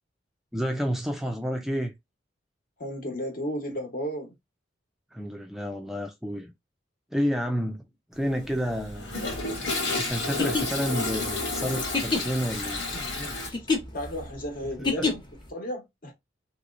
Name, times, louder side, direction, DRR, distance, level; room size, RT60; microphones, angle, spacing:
voice 1, 0.5-1.9 5.1-6.5 7.1-7.8 8.1-9.1 10.0-12.8 15.0-15.1, equal, ahead, 0.4 m, -30 dB
voice 2, 2.8-4.3 12.9-13.7 13.9-15.2 15.5-16.1, equal, 50° left, 1.0 m, -34 dB
Toilet flush, 8.2-13.5, left 3 dB, 80° left, 1.6 m, -31 dB
sound 1, 10.4-15.5, left 4 dB, 25° left, 0.9 m, -29 dB
3.0 x 3.0 x 2.5 m
head